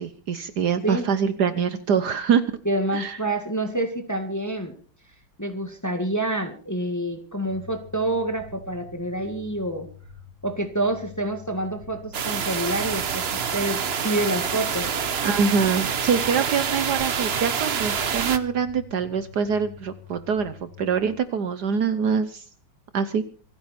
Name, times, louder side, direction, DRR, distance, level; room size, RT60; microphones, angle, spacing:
voice 1, 0.0-2.4 2.9-3.2 15.2-22.4 22.9-23.2, right 6 dB, 60° right, 12 dB, 1.4 m, -24 dB
voice 2, 2.7-4.7 5.4-9.9 10.4-15.0, right 1 dB, 10° left, 6 dB, 1.7 m, -27 dB
sound 1, 7.4-21.1, left 5 dB, 85° right, 5.0 m, -46 dB
sound 2, 12.1-18.4, right 7 dB, 45° right, 0.8 m, -27 dB
27.0 x 9.6 x 4.3 m, 0.40 s
omnidirectional pair, 2.1 m